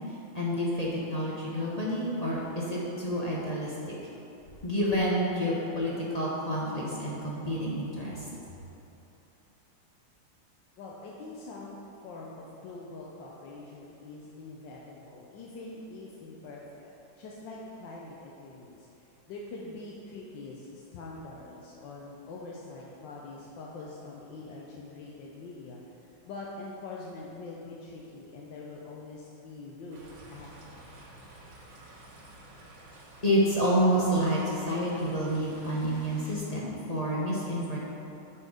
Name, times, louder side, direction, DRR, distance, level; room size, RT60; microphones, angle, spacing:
voice 1, 0.3-3.9 4.6-8.3 33.2-37.8, equal, 30° left, -6 dB, 0.7 m, -29 dB
voice 2, 10.8-16.9 17.2-30.8, left 3 dB, 70° left, -4 dB, 1.4 m, -44 dB
sound 1, 29.9-36.4, right 1 dB, 80° right, 2.0 m, -51 dB
9.8 x 4.6 x 4.9 m, 2.9 s
omnidirectional pair, 2.2 m